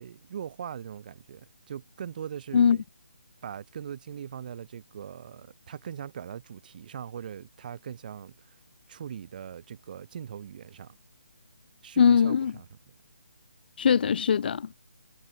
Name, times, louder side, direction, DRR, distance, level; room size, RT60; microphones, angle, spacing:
voice 1, 0.0-2.8 3.4-8.6 8.9-11.0 11.8-12.8, right 8 dB, 40° right, 6.9 m, -40 dB
voice 2, 12.0-12.5 13.8-14.7, left 7 dB, 45° left, 0.7 m, -21 dB
figure-of-eight pair, 150°, 7 cm